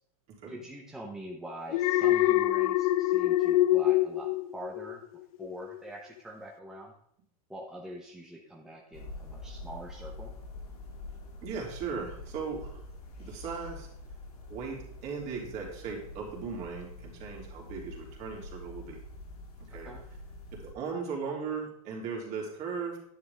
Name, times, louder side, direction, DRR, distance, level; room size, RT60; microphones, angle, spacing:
voice 1, 0.5-5.0 5.4-6.9 7.5-10.3 19.8-20.0, right 1 dB, 5° right, -1 dB, 0.9 m, -44 dB
Alarm, 1.7-5.0 5.4-5.8, left 14 dB, 70° left, 0.5 m, -25 dB
sound 1, 8.9-20.7, left 2 dB, 90° left, 2.7 m, -45 dB
voice 2, 11.4-12.8 13.2-13.9 14.5-19.0 19.7-19.9 20.5-23.0, right 5 dB, 40° right, -1 dB, 3.1 m, -37 dB
10.0 x 8.8 x 3.5 m, 0.68 s
supercardioid pair, 145°, 19 cm